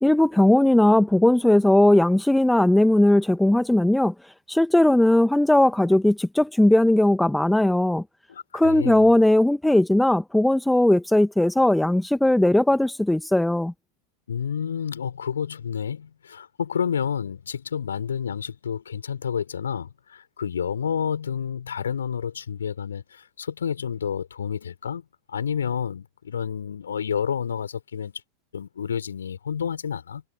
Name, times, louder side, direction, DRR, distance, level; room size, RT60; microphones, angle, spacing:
voice 1, 0.0-4.1 4.5-8.0 8.5-13.7, left 1 dB, 5° left, 1.6 m, -18 dB
voice 2, 8.3-9.1 14.3-25.0 25.3-28.2 28.5-30.2, left 7 dB, 70° left, 5.9 m, -29 dB
figure-of-eight pair, 90°, 0 cm